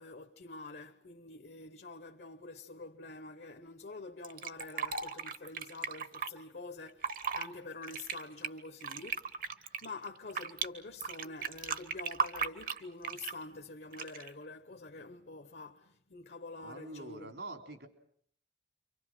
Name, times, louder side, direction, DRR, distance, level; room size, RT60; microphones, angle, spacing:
voice 1, 0.0-17.3, left 3 dB, 60° left, 1.0 m, -47 dB
Fill (with liquid), 4.2-6.3 6.9-7.5 7.8-10.7 11.0-13.4 13.9-14.3, right 6 dB, 50° right, 1.1 m, -36 dB
voice 2, 16.6-17.9, right 2 dB, 75° right, 3.6 m, -45 dB
29.0 x 24.5 x 6.2 m
head